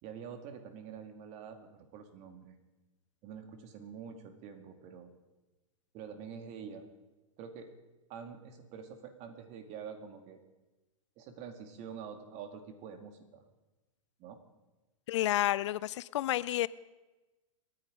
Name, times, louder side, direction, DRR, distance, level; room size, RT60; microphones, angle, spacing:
voice 1, 0.0-2.6 3.2-5.1 5.9-6.8 7.4-7.7 8.1-10.4 11.2-13.4 14.2-14.4, right 7 dB, 40° right, 2.4 m, -46 dB
voice 2, 15.1-16.7, left 14 dB, 60° left, 0.5 m, -30 dB
27.5 x 9.8 x 5.2 m
hypercardioid pair, 110°, 17 cm